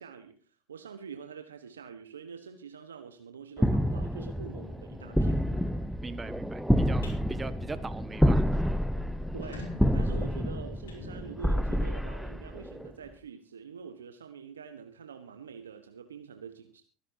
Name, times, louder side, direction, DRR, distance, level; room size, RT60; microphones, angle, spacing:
voice 1, 0.0-5.4 9.3-16.8, right 6 dB, 85° right, 1.2 m, -45 dB
sound 1, 3.6-12.9, equal, ahead, 0.9 m, -28 dB
sound 2, 5.0-5.9 6.9-8.0 9.0-9.9 10.9-11.9, left 5 dB, 70° left, 2.3 m, -51 dB
voice 2, 6.0-8.6, right 4 dB, 20° right, 1.5 m, -41 dB
sound 3, 7.0-7.2 7.6-7.9 8.2-8.3 8.6-8.7 9.2-11.7, left 4 dB, 85° left, 4.9 m, -48 dB
24.5 x 11.0 x 2.8 m
hypercardioid pair, 70°, 0 cm